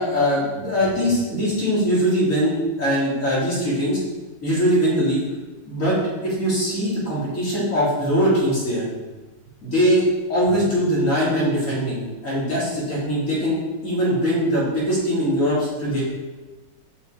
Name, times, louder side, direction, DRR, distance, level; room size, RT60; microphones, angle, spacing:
voice 1, 0.0-4.0 4.4-5.2 5.6-6.0 6.2-8.9 9.6-16.0, equal, 55° left, -8 dB, 3.1 m, -21 dB
5.8 x 5.5 x 4.9 m, 1.2 s
omnidirectional pair, 1.7 m